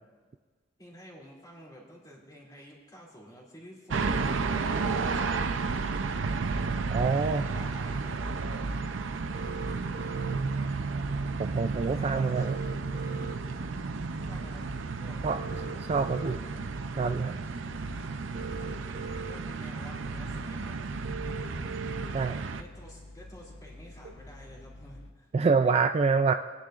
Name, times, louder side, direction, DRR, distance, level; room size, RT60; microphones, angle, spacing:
voice 1, 0.8-6.0 7.2-8.3 11.9-12.5 14.2-14.7 15.0-16.3 19.1-20.9 22.6-25.3, equal, 20° left, -4 dB, 2.8 m, -50 dB
sound 1, 3.9-22.6, right 4 dB, 75° right, 0.6 m, -32 dB
sound 2, 6.8-25.1, left 2 dB, 65° left, 0.7 m, -48 dB
voice 2, 6.9-7.5 11.4-12.6 15.2-15.4 15.9-16.4 17.0-17.4 22.1-22.4 25.3-26.3, right 4 dB, 30° right, 8 dB, 0.3 m, -26 dB
Phone Ringing Tone, 9.3-10.4 12.3-13.4 15.3-16.3 18.3-19.3 19.9-20.0 21.0-22.0 24.0-24.1, right 5 dB, 50° right, 0.9 m, -40 dB
22.0 x 10.0 x 2.5 m, 1.4 s
head